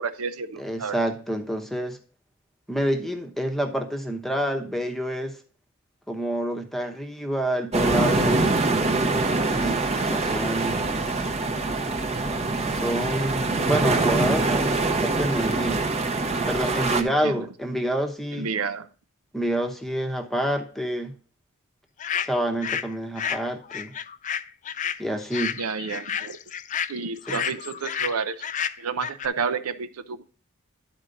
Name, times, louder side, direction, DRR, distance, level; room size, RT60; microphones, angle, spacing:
voice 1, 0.0-1.0 17.0-17.5 18.3-18.9 25.6-26.4 26.9-28.4 28.8-30.2, right 5 dB, 90° right, 0.6 m, -30 dB
voice 2, 0.6-2.0 2.7-5.4 6.1-8.5 9.3-9.8 10.1-10.9 12.7-15.9 16.5-18.5 19.3-21.1 22.2-23.9 25.0-25.6 27.3-27.4, right 1 dB, ahead, 0.9 m, -28 dB
sound 1, 7.7-17.0, right 3 dB, 30° right, 0.8 m, -24 dB
sound 2, 22.0-22.9 23.2-29.3, left 8 dB, 35° left, 0.3 m, -30 dB
11.0 x 4.4 x 3.8 m
head